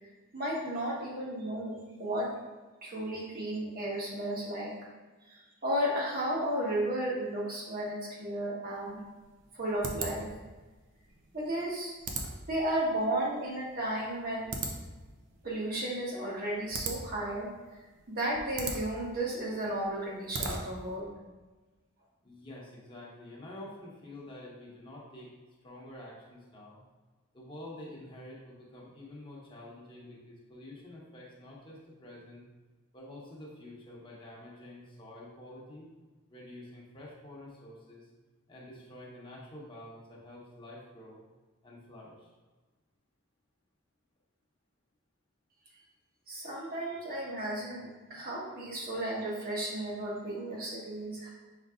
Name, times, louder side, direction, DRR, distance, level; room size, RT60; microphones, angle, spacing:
voice 1, 0.3-2.3 2.8-4.7 5.3-9.0 9.5-10.3 11.3-11.9 12.5-14.5 15.4-17.5 18.1-21.1 46.3-51.3, right 1 dB, 45° right, -4 dB, 1.3 m, -33 dB
sound 1, 8.8-21.0, right 3 dB, 65° right, 0.6 m, -41 dB
voice 2, 22.2-25.3 25.6-26.8 27.3-32.4 32.9-35.9 36.3-38.1 38.5-41.2 41.6-42.3, left 1 dB, 25° left, -4 dB, 1.0 m, -48 dB
5.6 x 3.9 x 2.4 m, 1.3 s
head